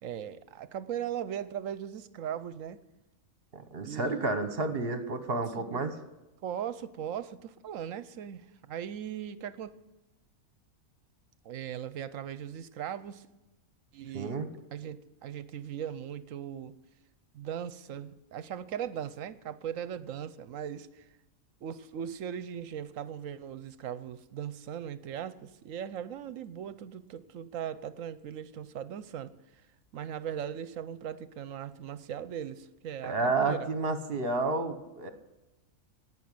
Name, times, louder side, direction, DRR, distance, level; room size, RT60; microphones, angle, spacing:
voice 1, 0.0-2.8 3.8-4.4 5.6-5.8 6.4-9.7 11.4-13.3 13.9-14.4 14.7-16.7 17.3-21.1 21.6-29.3 29.9-33.7, right 9 dB, 70° right, 15 dB, 1.0 m, -39 dB
voice 2, 3.5-5.9 14.1-14.5 33.0-35.1, right 3 dB, 45° right, 9 dB, 1.3 m, -30 dB
18.0 x 6.2 x 9.1 m, 1.0 s
omnidirectional pair, 1.5 m